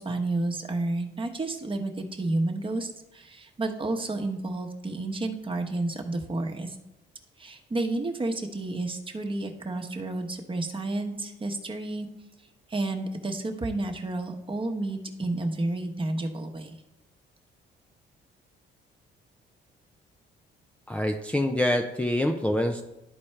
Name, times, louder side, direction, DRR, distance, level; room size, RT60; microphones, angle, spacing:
voice 1, 0.0-6.8 7.4-12.1 12.7-16.8, right 2 dB, 25° right, 3 dB, 1.1 m, -31 dB
voice 2, 20.9-22.8, left 1 dB, 5° left, 2 dB, 0.5 m, -25 dB
12.0 x 4.3 x 3.3 m, 0.91 s
cardioid pair, 90°, 20 cm